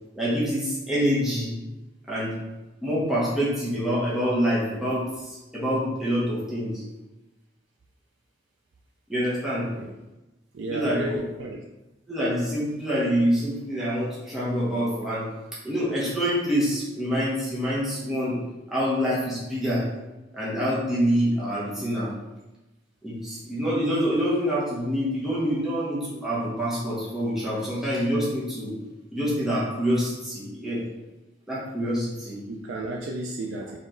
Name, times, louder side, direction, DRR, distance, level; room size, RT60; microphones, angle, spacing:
voice 1, 0.2-1.5 2.1-2.3 2.8-6.8 9.1-9.7 10.7-11.0 12.1-15.2 15.6-18.4 18.7-19.9 20.3-22.1 23.0-28.8 29.1-30.8 31.5-32.4, equal, ahead, -8 dB, 1.0 m, -26 dB
voice 2, 10.5-11.6 32.5-33.8, right 1 dB, 85° right, 1 dB, 0.5 m, -33 dB
4.3 x 3.1 x 3.8 m, 1.0 s
head